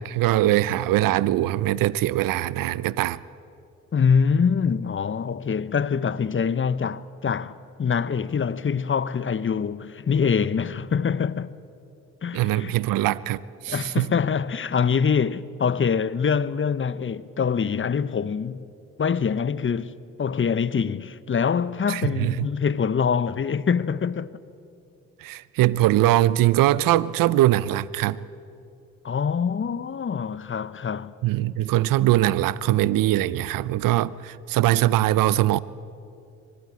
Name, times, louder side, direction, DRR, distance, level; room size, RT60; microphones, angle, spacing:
voice 1, 0.0-3.2 12.3-14.1 21.9-22.4 25.2-28.2 31.2-35.6, right 15 dB, 70° right, 0.7 m, -22 dB
voice 2, 3.9-11.5 12.2-12.8 13.7-18.7 19.0-19.9 20.2-24.3 29.0-31.1, left 6 dB, 35° left, 1.0 m, -24 dB
24.5 x 19.5 x 8.6 m
hypercardioid pair, 45°, 35 cm